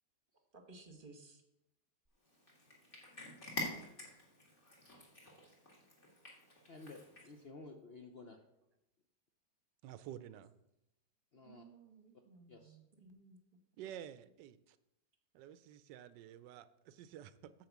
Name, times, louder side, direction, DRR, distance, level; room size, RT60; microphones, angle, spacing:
voice 1, 0.5-1.4 11.4-13.4, right 3 dB, 35° right, 5 dB, 1.2 m, -58 dB
Cat, 2.2-7.4, left 1 dB, 30° left, 2.2 m, -47 dB
voice 2, 6.7-8.4 11.3-11.7 12.5-12.8, left 3 dB, 50° left, 3 dB, 0.7 m, -53 dB
voice 3, 9.8-10.5 13.8-14.8 15.3-17.5, right 11 dB, 85° right, 14 dB, 1.2 m, -51 dB
9.4 x 4.7 x 7.2 m, 0.86 s
omnidirectional pair, 1.9 m